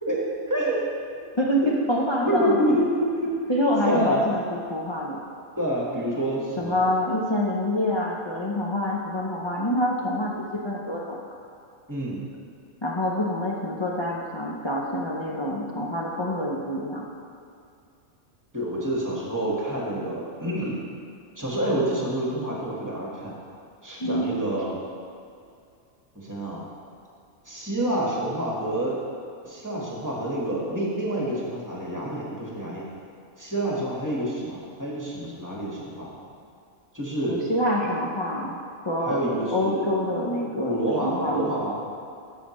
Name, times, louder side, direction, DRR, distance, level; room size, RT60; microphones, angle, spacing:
voice 1, 0.0-0.8 2.3-3.3 3.8-4.3 5.6-6.8 11.9-12.2 18.5-20.8 21.4-23.3 23.8-24.8 26.1-26.6 27.4-29.0 29.4-32.8 33.4-36.1 36.9-37.4 39.0-39.9 40.6-41.8, right 1 dB, 15° right, -5 dB, 1.5 m, -27 dB
voice 2, 1.4-2.6 3.5-5.2 6.6-10.3 10.6-11.2 12.8-17.1 24.0-24.3 37.3-38.6 38.9-39.2 39.5-41.5, left 1 dB, 30° left, -4 dB, 0.5 m, -26 dB
13.5 x 5.6 x 3.1 m, 2.4 s
omnidirectional pair, 1.3 m